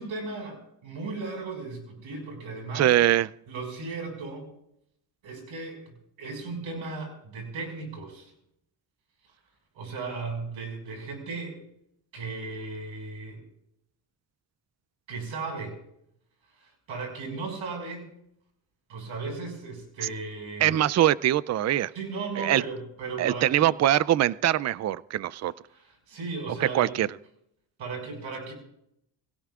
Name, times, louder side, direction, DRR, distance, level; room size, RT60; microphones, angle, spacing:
voice 1, 0.0-2.9 3.5-4.5 5.2-8.3 9.7-11.6 12.1-13.4 15.1-15.8 16.6-18.1 18.9-20.8 21.9-23.8 25.7-26.9 27.8-28.5, right 3 dB, 80° right, 3 dB, 5.6 m, -36 dB
voice 2, 2.7-3.3 20.6-21.9 22.4-22.6 23.2-25.5 26.6-27.1, right 12 dB, 35° right, 20 dB, 0.4 m, -23 dB
24.5 x 17.0 x 2.4 m, 0.77 s
cardioid pair, 85°, 46 cm